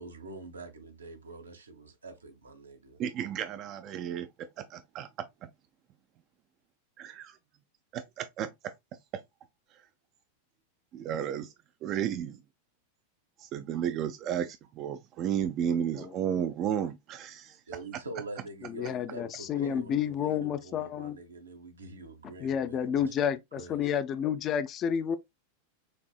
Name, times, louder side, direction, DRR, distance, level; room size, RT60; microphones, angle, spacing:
voice 1, 0.0-3.0 17.7-23.2 23.5-23.9, right 2 dB, 75° right, 0.9 m, -45 dB
voice 2, 3.0-5.5 7.0-7.4 7.9-8.5 9.1-9.2 9.7-9.8 10.9-11.5 11.8-12.4 13.4-17.6, right 9 dB, 35° right, 0.4 m, -33 dB
voice 3, 18.6-21.2 22.4-25.2, left 8 dB, 30° left, 0.4 m, -30 dB
6.4 x 2.7 x 2.3 m
figure-of-eight pair, 90°, 0 cm